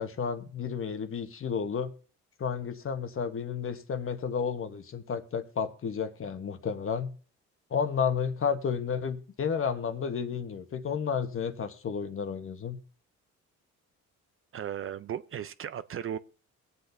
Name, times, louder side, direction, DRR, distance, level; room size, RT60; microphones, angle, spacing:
voice 1, 0.0-1.9 2.4-7.1 7.7-12.8, left 6 dB, 45° left, 1.1 m, -32 dB
voice 2, 14.5-16.2, right 9 dB, 45° right, 0.5 m, -36 dB
21.0 x 8.2 x 2.6 m
cardioid pair, 90°, 30 cm